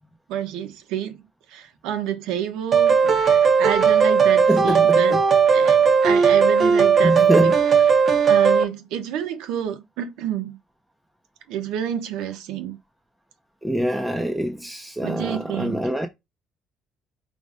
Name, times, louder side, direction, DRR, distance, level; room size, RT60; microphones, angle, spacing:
voice 1, 0.3-1.2 1.5-5.2 5.5-7.5 8.3-10.6 11.5-12.8 15.0-15.9, right 10 dB, 90° right, 0.8 m, -29 dB
sound 1, 2.7-8.6, right 6 dB, 35° right, 0.7 m, -17 dB
voice 2, 4.5-5.2 7.0-7.5 13.6-16.1, right 1 dB, 5° right, 0.5 m, -24 dB
5.2 x 2.1 x 4.7 m
cardioid pair, 130°, 0 cm